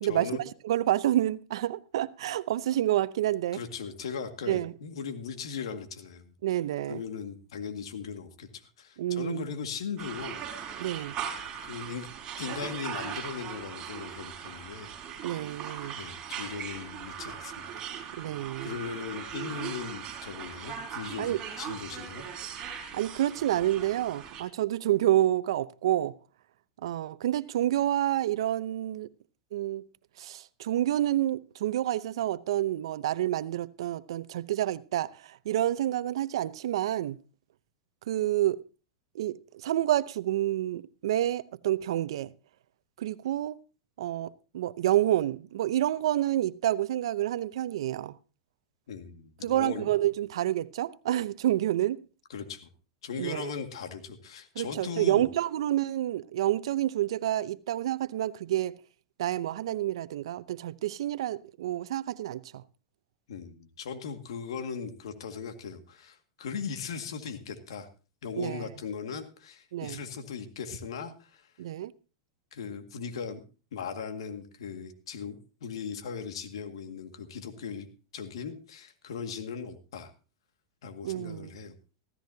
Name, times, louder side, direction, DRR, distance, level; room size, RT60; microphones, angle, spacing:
voice 1, 0.0-0.4 3.5-6.3 6.9-10.4 11.6-12.1 12.4-14.9 15.9-17.8 18.6-22.2 48.9-49.9 52.3-52.7 53.0-55.3 63.3-67.9 68.2-71.5 72.5-73.4 73.7-77.9 78.1-80.1 80.8-81.7, left 6 dB, 80° left, 2.1 m, -38 dB
voice 2, 0.6-3.6 4.5-4.7 6.4-7.0 9.0-9.4 10.8-11.2 15.2-16.0 18.2-18.7 21.2-21.4 22.9-26.2 26.8-29.1 29.5-29.8 30.2-37.2 38.1-38.6 39.1-42.3 43.0-43.6 44.0-48.2 49.4-52.0 53.2-53.5 54.6-58.7 59.2-62.6 68.4-68.6 69.7-70.0 71.6-71.9 81.0-81.5, right 13 dB, 75° right, 0.7 m, -28 dB
sound 1, 10.0-24.4, right 8 dB, 30° right, 4.2 m, -39 dB
15.5 x 14.5 x 2.8 m
hypercardioid pair, 120°, 3 cm